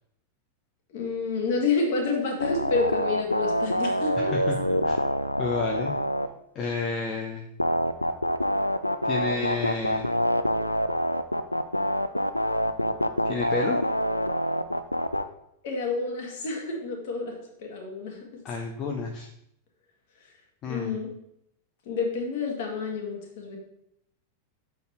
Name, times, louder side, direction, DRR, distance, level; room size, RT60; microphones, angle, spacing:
voice 1, 0.9-4.3 15.6-18.2 20.7-21.1 21.8-23.6, left 4 dB, 50° left, 1 dB, 1.8 m, -29 dB
sound 1, 2.4-6.3 7.6-15.2, equal, 85° left, 0.3 m, -26 dB
voice 2, 4.2-4.6 4.8-5.0 5.4-6.0 6.5-7.4 9.0-10.1 13.2-13.8 18.4-19.3 20.6-20.9, left 4 dB, 35° left, 2 dB, 0.7 m, -30 dB
6.7 x 4.1 x 4.2 m, 0.77 s
figure-of-eight pair, 90°, 0 cm